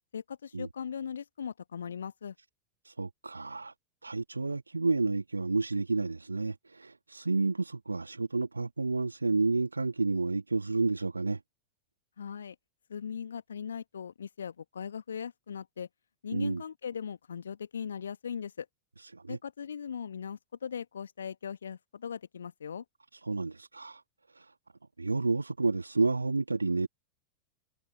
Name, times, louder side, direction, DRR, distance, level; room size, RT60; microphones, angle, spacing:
voice 1, 0.1-2.3 12.2-12.5 12.9-15.9 16.2-18.6 19.3-22.8, left 7 dB, 70° left, 1.4 m, -39 dB
voice 2, 2.8-3.7 4.0-11.4 16.3-16.6 19.0-19.4 23.2-24.0 24.4-24.5 25.0-26.9, right 3 dB, 80° right, 1.8 m, -30 dB
figure-of-eight pair, 90°, 0 cm